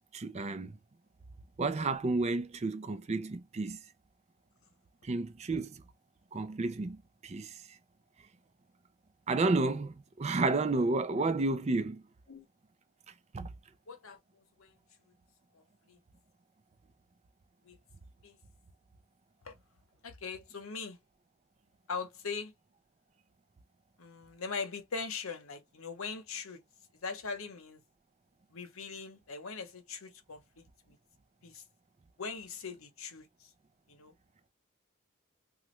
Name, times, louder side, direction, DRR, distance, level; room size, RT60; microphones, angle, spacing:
voice 1, 0.1-0.7 1.6-3.8 5.0-5.8 6.3-7.0 7.2-7.5 9.3-12.0 13.3-13.5, right 3 dB, 30° right, 0.4 m, -31 dB
voice 2, 13.9-14.7 15.5-16.0 17.6-17.8 18.2-18.4 19.4-19.6 20.0-21.0 21.9-22.5 24.0-26.6 27.0-27.8 28.5-31.0 31.4-31.6 32.2-33.5 33.9-34.1, left 5 dB, 75° left, 0.8 m, -41 dB
3.0 x 2.4 x 3.0 m
head